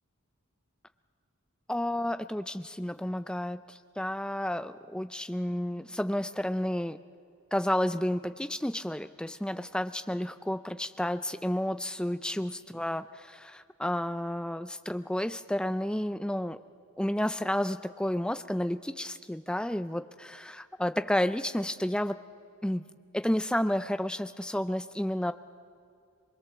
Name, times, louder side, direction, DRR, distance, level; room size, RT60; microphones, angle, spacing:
voice 1, 1.7-7.0 7.5-16.6 17.0-22.2 22.6-22.8 23.1-25.3, left 1 dB, 5° left, 11 dB, 0.4 m, -31 dB
23.5 x 21.0 x 7.2 m, 2.5 s
head